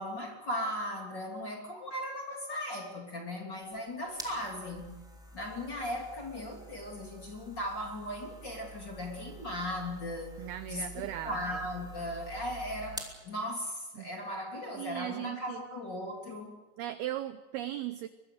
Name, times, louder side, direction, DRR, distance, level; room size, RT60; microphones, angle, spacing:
voice 1, 0.0-5.0 5.3-10.4 10.7-16.6, left 1 dB, 30° left, 1 dB, 2.8 m, -37 dB
sound 1, 3.6-13.2, right 2 dB, ahead, 1.7 m, -48 dB
voice 2, 10.4-11.4 14.0-14.1 14.8-15.6 16.8-18.1, right 13 dB, 80° right, 11 dB, 2.3 m, -37 dB
23.5 x 21.5 x 6.6 m, 1.2 s
omnidirectional pair, 5.3 m